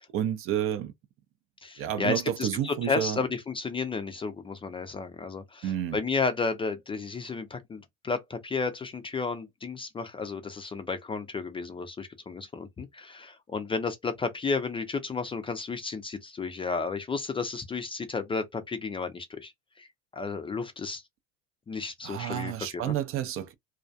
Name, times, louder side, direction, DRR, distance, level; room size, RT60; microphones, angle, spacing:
voice 1, 0.1-0.9 1.8-3.2 5.6-6.0 22.0-23.5, right 10 dB, 45° right, 0.5 m, -30 dB
voice 2, 1.6-19.5 19.8-19.9 20.1-21.0 21.7-23.0, left 4 dB, 15° left, 0.4 m, -32 dB
2.3 x 2.1 x 2.6 m
hypercardioid pair, 90°, 32 cm